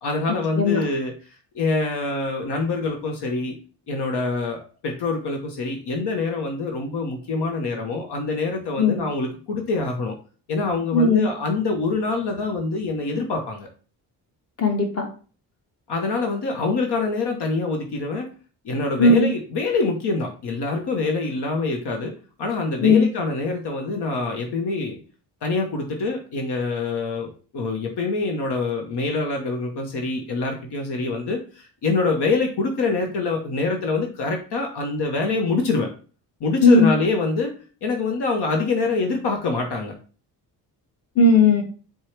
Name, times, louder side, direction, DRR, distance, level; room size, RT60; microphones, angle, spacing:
voice 1, 0.0-1.1 1.5-3.5 3.9-4.6 4.8-10.1 10.5-13.7 15.9-18.3 18.6-22.1 22.4-25.0 25.4-35.9 36.4-37.5 37.8-39.9, left 3 dB, 70° left, 2 dB, 0.9 m, -25 dB
voice 2, 10.9-11.2 14.6-15.1 19.0-19.3 22.8-23.1 36.6-36.9 41.1-41.6, left 3 dB, 35° left, 3 dB, 1.3 m, -16 dB
4.6 x 2.3 x 4.4 m, 0.39 s
cardioid pair, 75°, 42 cm